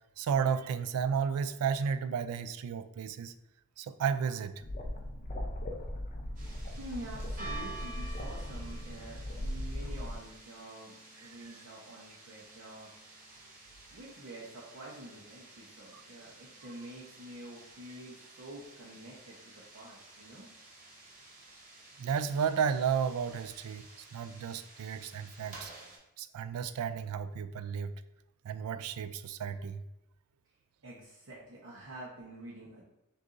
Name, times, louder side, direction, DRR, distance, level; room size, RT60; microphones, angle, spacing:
voice 1, 0.2-3.3 3.8-4.6 11.2-11.3 22.0-23.9 24.1-25.7 26.2-27.9 28.4-29.8, right 7 dB, 85° right, 13 dB, 0.3 m, -33 dB
sound 1, 4.6-10.2, left 1 dB, 35° left, 0.5 m, -38 dB
sound 2, 6.4-26.0, right 2 dB, 35° right, 1.1 m, -51 dB
voice 2, 6.7-12.9 13.9-20.5 30.8-32.8, right 1 dB, 65° right, -6 dB, 0.8 m, -47 dB
6.4 x 2.6 x 2.5 m, 0.91 s
head